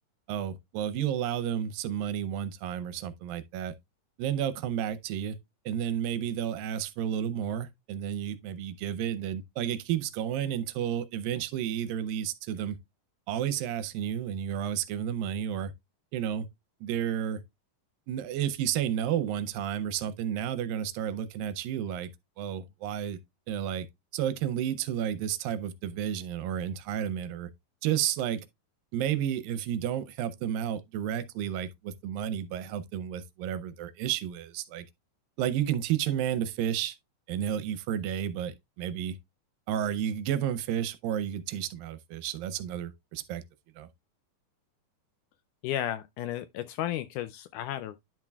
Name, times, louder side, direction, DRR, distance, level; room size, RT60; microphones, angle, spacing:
voice 1, 0.3-3.7 4.2-5.4 5.7-12.8 13.3-15.7 16.1-16.5 16.8-17.4 18.1-22.1 22.4-23.2 23.5-23.9 24.1-27.5 27.8-28.4 28.9-34.8 35.4-37.0 37.3-39.2 39.7-43.4 43.8-43.9, right 10 dB, 85° right, 2.5 m, -31 dB
voice 2, 45.6-48.0, left 12 dB, 80° left, 1.9 m, -33 dB
10.5 x 5.9 x 2.3 m
omnidirectional pair, 4.0 m